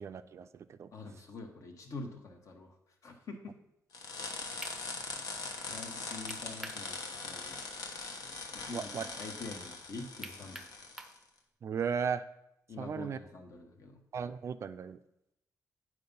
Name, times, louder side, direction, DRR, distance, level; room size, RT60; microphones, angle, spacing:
voice 1, 0.0-0.9 8.7-9.1 11.6-12.2 12.8-13.2 14.1-15.0, right 6 dB, 45° right, 11 dB, 0.4 m, -36 dB
voice 2, 0.9-2.8 3.0-3.5 5.7-7.0 7.2-7.6 8.5-10.6 12.7-14.0, left 3 dB, 55° left, 3 dB, 1.3 m, -45 dB
sound 1, 3.9-11.2, left 4 dB, 75° left, 1.1 m, -41 dB
sound 2, 4.6-4.8 6.3-6.8 7.2-7.3 10.2-11.2, right 1 dB, 5° right, 0.6 m, -45 dB
8.5 x 4.7 x 5.3 m, 0.83 s
cardioid pair, 135°, 7 cm